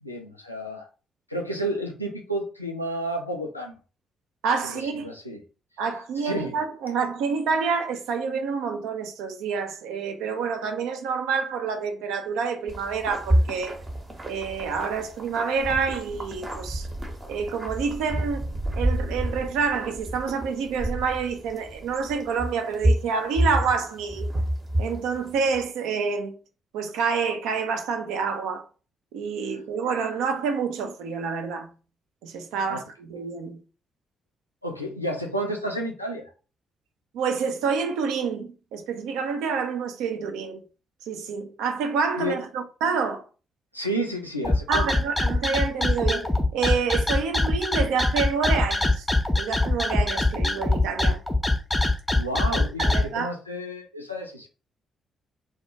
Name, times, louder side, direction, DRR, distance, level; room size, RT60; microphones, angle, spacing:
voice 1, 0.0-0.9 1.3-3.7 4.7-5.4 6.2-6.5 32.7-32.8 34.6-36.3 42.2-42.4 43.7-44.9 52.1-54.5, right 1 dB, 90° left, 0.3 m, -31 dB
voice 2, 4.4-5.1 5.8-13.8 14.2-16.9 17.3-18.5 18.7-24.3 24.8-26.3 26.7-28.6 29.1-31.7 32.2-33.6 37.1-40.6 41.0-43.2 44.7-49.1 49.4-51.2 52.8-53.3, right 5 dB, 65° right, 0.3 m, -28 dB
sound 1, 12.7-25.6, right 1 dB, 30° right, 0.7 m, -29 dB
sound 2, 44.4-53.0, left 2 dB, 15° left, 0.4 m, -22 dB
2.2 x 2.0 x 2.7 m
figure-of-eight pair, 40°, 0 cm